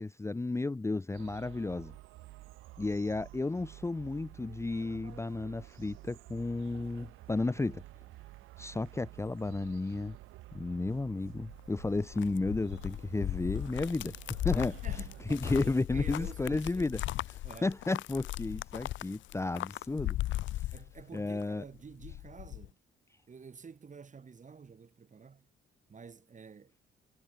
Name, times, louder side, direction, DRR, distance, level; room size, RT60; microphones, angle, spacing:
voice 1, 0.0-1.9 2.8-7.8 8.6-10.2 10.5-14.8 15.3-17.0 17.6-20.2 20.5-20.7 21.1-21.6, left 3 dB, 15° left, 0.8 m, -33 dB
sound 1, 1.1-15.6, right 17 dB, 90° right, 1.0 m, -51 dB
sound 2, 11.5-21.4 21.7-22.7, left 15 dB, 70° left, 0.5 m, -37 dB
voice 2, 14.8-17.0 17.4-17.7 20.7-22.8 23.3-25.5 25.9-26.8, right 5 dB, 40° right, 5.1 m, -50 dB
cardioid pair, 90°, 20 cm